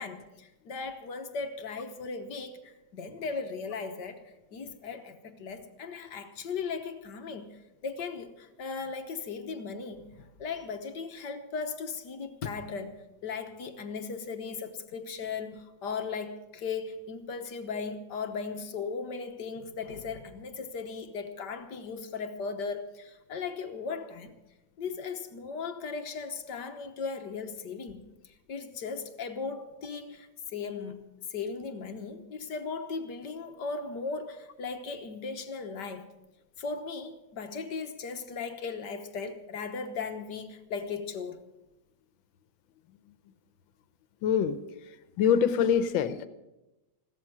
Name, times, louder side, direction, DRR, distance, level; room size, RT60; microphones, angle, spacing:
voice 1, 0.0-4.2 4.5-24.3 24.8-36.1 36.6-41.4, left 5 dB, 65° left, 1.6 m, -37 dB
voice 2, 44.2-44.6 45.2-46.3, left 8 dB, 85° left, 1.6 m, -24 dB
16.0 x 13.0 x 6.1 m
omnidirectional pair, 2.1 m